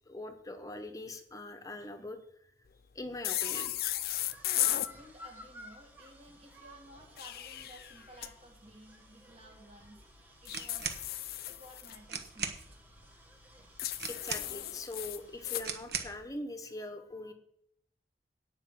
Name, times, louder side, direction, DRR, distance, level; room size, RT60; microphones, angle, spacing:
voice 1, 0.1-2.5 2.9-3.8 14.1-17.3, left 2 dB, 20° left, 7 dB, 1.0 m, -42 dB
sound 1, 3.2-4.9 7.0-8.3 10.5-12.0 13.8-15.7, left 14 dB, 55° left, 0.4 m, -35 dB
sound 2, 3.4-15.5, equal, 10° right, 1.6 m, -55 dB
voice 2, 4.6-11.0 11.5-12.6, right 1 dB, 35° right, 1 dB, 2.1 m, -55 dB
sound 3, 10.5-11.0 11.8-11.9 12.1-12.6 14.0-14.7 15.6-16.2, right 6 dB, 65° right, 1.2 m, -38 dB
9.9 x 5.4 x 7.3 m, 0.74 s
head